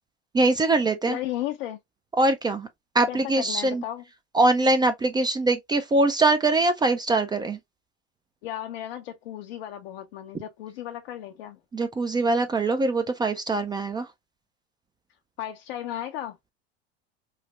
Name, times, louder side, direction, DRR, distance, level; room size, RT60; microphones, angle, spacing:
voice 1, 0.3-1.2 2.2-2.7 2.9-3.8 4.3-7.6 11.7-14.1, right 2 dB, 15° right, 0.3 m, -22 dB
voice 2, 1.1-1.8 3.1-4.0 8.4-11.6 15.4-16.4, left 12 dB, 70° left, 0.6 m, -34 dB
3.1 x 2.0 x 2.8 m
hypercardioid pair, 90°, 31 cm